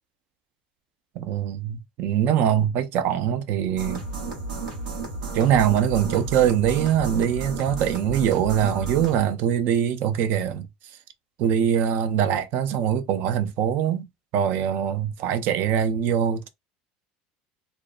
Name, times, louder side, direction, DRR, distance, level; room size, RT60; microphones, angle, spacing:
voice 1, 1.2-4.0 5.3-10.7 11.4-14.1 14.3-16.5, right 9 dB, 60° right, 0.5 m, -23 dB
sound 1, 3.8-9.2, right 3 dB, 85° right, 1.0 m, -33 dB
2.5 x 2.1 x 2.4 m
supercardioid pair, 100°, 4 cm